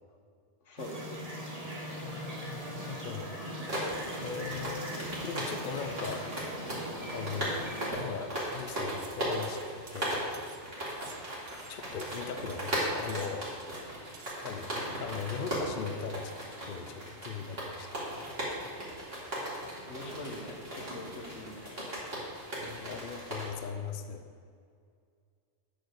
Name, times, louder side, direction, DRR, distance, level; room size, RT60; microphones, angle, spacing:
voice 1, 0.6-1.2 19.8-22.0, left 2 dB, 85° left, 2 dB, 1.5 m, -44 dB
sound 1, 0.8-7.9, equal, 30° right, 1.7 m, -40 dB
voice 2, 2.0-3.3 4.2-4.9 5.2-6.6 7.1-7.7 8.0-10.2 11.7-13.5 14.4-16.3 16.6-17.9 22.6-24.2, left 6 dB, 55° left, 7 dB, 0.7 m, -39 dB
sound 2, 3.7-23.5, equal, 55° right, 2.7 m, -37 dB
sound 3, 8.9-9.2 9.4-10.6 10.9-12.2 12.5-12.8 13.1-13.8 14.1-14.4, right 6 dB, 75° right, 1.2 m, -52 dB
10.5 x 5.0 x 6.5 m, 2.1 s
omnidirectional pair, 1.2 m